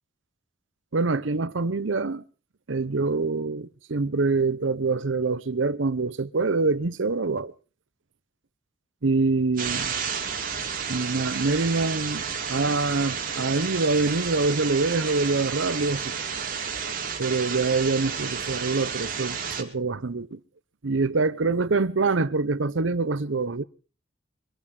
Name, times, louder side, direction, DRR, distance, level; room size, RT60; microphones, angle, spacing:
voice 1, 0.9-2.2 2.7-7.5 9.0-9.9 10.9-16.1 17.2-20.4 20.8-23.6, right 3 dB, 80° right, 0.8 m, -25 dB
sound 1, 9.6-19.6, right 6 dB, 45° right, 2.8 m, -31 dB
23.5 x 9.0 x 6.4 m
head